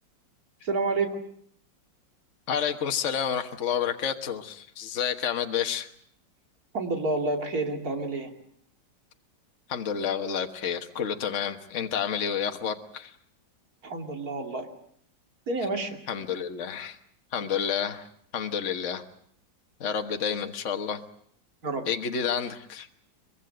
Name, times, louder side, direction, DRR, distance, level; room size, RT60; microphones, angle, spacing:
voice 1, 0.6-1.2 6.7-8.3 13.8-14.7 15.5-16.0 21.6-21.8, right 3 dB, 50° right, 3 dB, 3.1 m, -29 dB
voice 2, 2.5-5.9 9.7-13.1 16.1-17.0 17.3-18.1 18.3-19.0 19.8-21.0 21.9-22.9, left 7 dB, 45° left, 6 dB, 1.5 m, -29 dB
24.0 x 22.0 x 7.8 m, 0.64 s
omnidirectional pair, 2.1 m